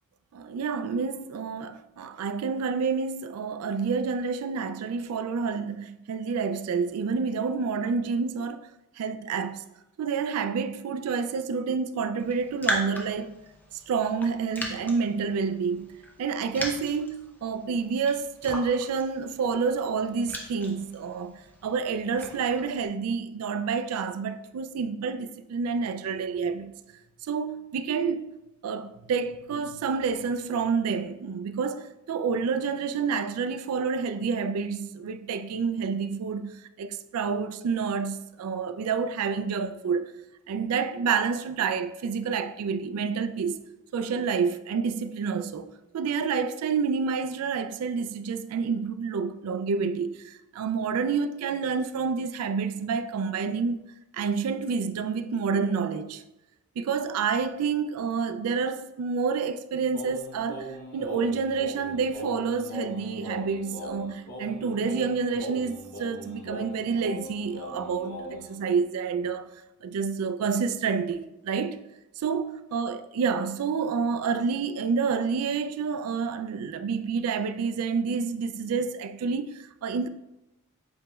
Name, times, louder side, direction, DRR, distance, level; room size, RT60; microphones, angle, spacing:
voice 1, 0.3-8.7 9.0-9.6 10.0-13.4 13.7-26.7 27.2-28.4 28.6-40.2 40.5-43.6 43.9-53.8 54.1-56.2 56.8-69.5 69.8-71.9 72.2-80.1, right 5 dB, 75° right, 0.3 m, -29 dB
Raindrop, 12.2-22.9, equal, 10° left, 0.5 m, -38 dB
Singing, 59.9-68.5, equal, 40° left, 0.9 m, -40 dB
7.7 x 3.0 x 2.3 m
head